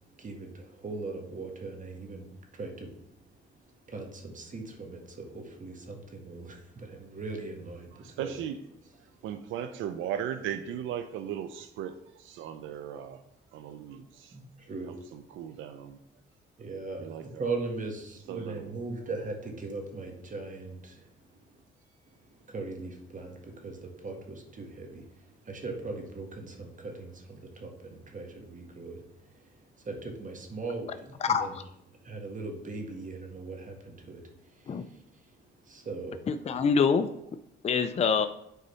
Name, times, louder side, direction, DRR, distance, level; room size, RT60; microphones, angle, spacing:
voice 1, 0.1-8.3 9.0-9.2 14.3-15.1 16.6-21.6 22.1-31.6 32.0-36.3, right 3 dB, 40° right, 3 dB, 1.6 m, -40 dB
voice 2, 8.0-8.6 9.0-13.2 13.5-14.4 14.6-16.0 17.0-17.4 18.3-18.7, right 9 dB, 90° right, 9 dB, 0.6 m, -37 dB
voice 3, 31.2-31.6 34.7-34.8 36.3-37.1 37.6-38.3, left 6 dB, 35° left, 10 dB, 0.5 m, -25 dB
8.3 x 4.0 x 5.6 m, 0.79 s
cardioid pair, 90°, 20 cm